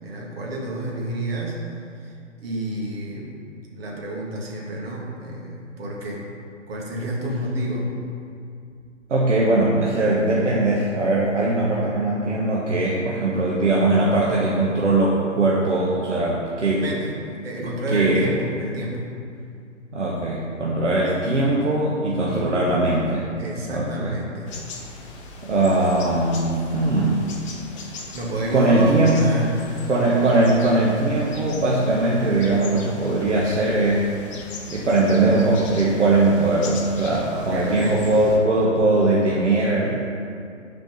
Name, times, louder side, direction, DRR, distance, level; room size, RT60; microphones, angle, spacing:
voice 1, 0.0-3.4 3.7-6.2 6.7-7.9 16.8-19.1 22.2-22.6 23.4-24.5 27.8-29.9 37.1-38.1, right 1 dB, 50° right, -3 dB, 2.3 m, -29 dB
voice 2, 9.1-16.8 17.6-18.2 19.9-24.1 25.4-27.2 28.5-29.2 29.9-34.1 34.7-40.0, right 2 dB, 70° right, -5 dB, 1.5 m, -20 dB
sound 1, 24.5-38.4, left 3 dB, 25° left, 0.9 m, -40 dB
9.6 x 5.1 x 5.3 m, 2.4 s
figure-of-eight pair, 135°, 38 cm